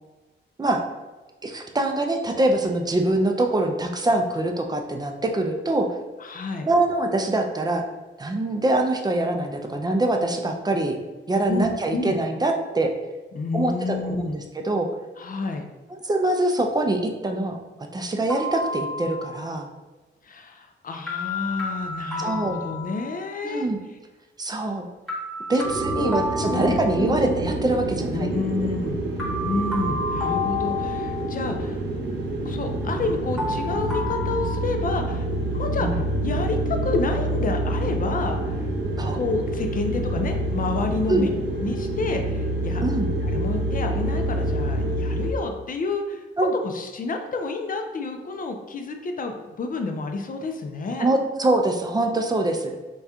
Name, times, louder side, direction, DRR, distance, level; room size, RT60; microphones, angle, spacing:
voice 1, 1.4-5.9 6.6-7.8 8.2-11.0 11.3-12.9 13.5-14.9 16.0-17.6 17.9-19.7 22.2-22.6 23.4-23.8 24.4-24.9 25.5-28.3 35.8-36.0 39.0-39.2 41.1-41.3 42.8-43.1 46.4-46.5 51.0-52.8, right 2 dB, 20° right, 3 dB, 0.4 m, -24 dB
voice 2, 6.2-6.7 11.5-12.2 13.3-14.4 15.2-15.6 20.2-23.7 25.5-25.6 26.0-26.2 26.5-27.2 28.1-29.0 29.4-31.8 32.4-35.3 35.5-38.6 39.1-41.3 41.6-42.8 43.2-46.2 46.6-51.1, left 3 dB, 45° left, 4 dB, 0.5 m, -29 dB
sound 1, 18.3-19.4 21.1-23.4 25.1-27.4 29.2-31.5 33.4-34.4, left 2 dB, ahead, 1.2 m, -31 dB
sound 2, 25.6-45.3, right 1 dB, 65° right, 0.7 m, -27 dB
4.1 x 2.3 x 3.6 m, 1.2 s
wide cardioid pair, 105°, 20 cm